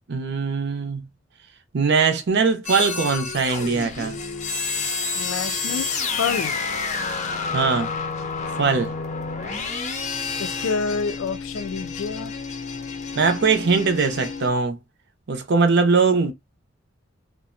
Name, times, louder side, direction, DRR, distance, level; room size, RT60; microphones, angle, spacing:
voice 1, 0.1-1.1 1.7-4.2 7.5-7.9 8.6-8.9 13.2-14.8 15.3-16.3, right 4 dB, 60° right, 0.6 m, -21 dB
sound 1, 2.6-14.5, left 4 dB, 35° left, 0.5 m, -29 dB
voice 2, 5.1-6.6 10.4-12.3, left 5 dB, 90° left, 0.4 m, -28 dB
2.5 x 2.0 x 2.4 m
head